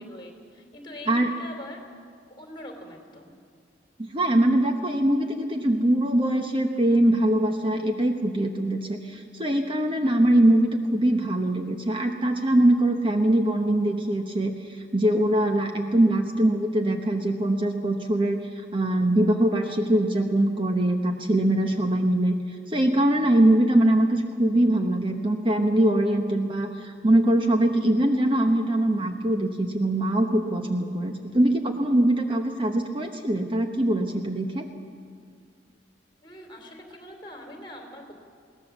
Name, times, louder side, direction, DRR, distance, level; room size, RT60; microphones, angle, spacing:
voice 1, 0.0-1.8 2.4-3.4 36.2-38.1, left 1 dB, 25° left, 3 dB, 3.1 m, -43 dB
voice 2, 4.0-34.7, right 1 dB, 25° right, 4 dB, 1.0 m, -22 dB
21.5 x 17.5 x 7.2 m, 2.2 s
head